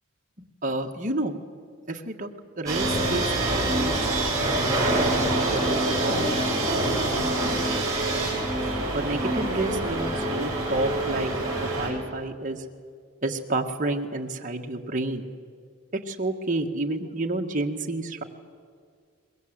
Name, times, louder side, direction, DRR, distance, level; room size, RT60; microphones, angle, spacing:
voice 1, 0.6-1.4 1.9-2.3 2.6-4.6 5.3-7.6 8.9-12.6 13.2-15.3 16.1-18.2, right 2 dB, 40° right, 2 dB, 1.6 m, -30 dB
sound 1, 2.7-11.9, right 2 dB, 15° right, 6.8 m, -25 dB
23.5 x 22.0 x 8.1 m, 2.1 s
head